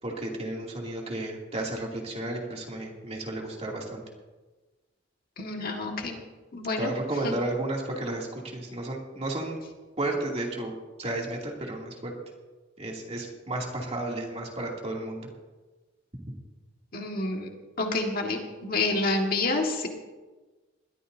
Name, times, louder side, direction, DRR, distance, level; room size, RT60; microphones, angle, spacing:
voice 1, 0.0-4.0 6.8-9.6 10.0-10.7 11.0-12.1 12.8-15.3, right 2 dB, 35° right, -2 dB, 2.7 m, -33 dB
voice 2, 5.4-6.2 6.5-6.9 7.2-7.3 16.9-17.5 17.8-19.9, left 2 dB, 50° left, 2 dB, 1.7 m, -28 dB
21.0 x 13.5 x 2.7 m, 1.2 s
head